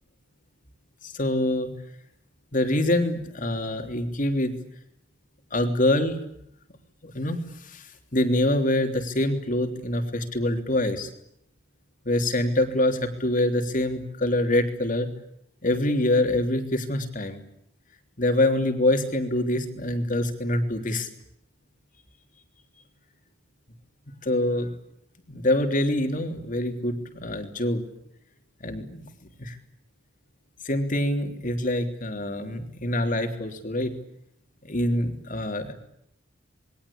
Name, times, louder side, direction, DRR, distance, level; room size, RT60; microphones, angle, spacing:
voice 1, 1.0-1.7 2.5-4.6 5.5-6.2 7.0-11.1 12.0-15.1 15.6-17.4 18.2-21.1 24.2-24.7 25.3-27.8 28.6-29.1 29.4-29.6 30.6-33.9 34.6-35.7, left 1 dB, 40° left, 6 dB, 3.4 m, -25 dB
27.5 x 22.0 x 8.7 m, 0.74 s
head